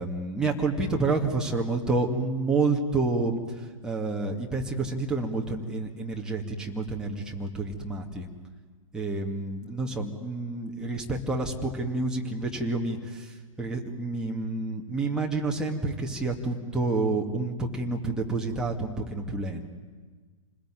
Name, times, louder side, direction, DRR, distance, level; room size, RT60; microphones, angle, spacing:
voice 1, 0.0-8.3 8.9-19.7, right 3 dB, 5° right, -1 dB, 2.3 m, -29 dB
28.5 x 21.0 x 9.3 m, 1.4 s
figure-of-eight pair, 115°, 18 cm